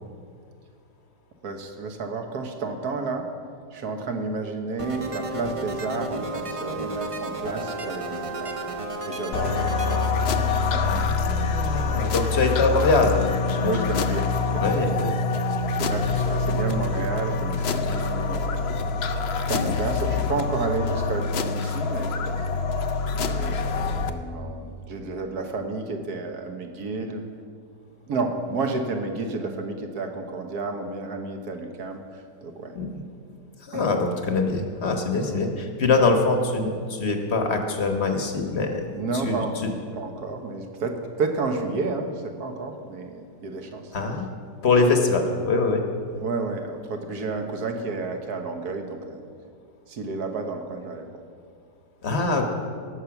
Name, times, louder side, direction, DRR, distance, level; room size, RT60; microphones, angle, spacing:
voice 1, 1.4-3.3 3.7-8.6 9.1-11.1 11.4-12.4 13.6-15.2 15.8-18.8 19.5-22.4 23.3-27.2 28.1-32.7 33.7-33.9 35.1-35.4 38.9-39.6 39.9-43.9 46.2-49.2 49.9-51.1, right 3 dB, 60° right, 5 dB, 1.6 m, -31 dB
sound 1, 4.8-10.1, right 2 dB, 40° right, 0.4 m, -32 dB
sound 2, 9.3-24.1, left 4 dB, 80° left, 0.5 m, -25 dB
voice 2, 10.8-13.8 14.5-15.1 16.0-16.1 18.9-19.0 32.7-32.9 33.6-38.9 39.2-39.7 43.9-44.3 44.6-45.8 52.0-52.4, left 3 dB, 40° left, 4 dB, 1.2 m, -23 dB
17.5 x 6.7 x 5.9 m, 2.3 s
omnidirectional pair, 1.9 m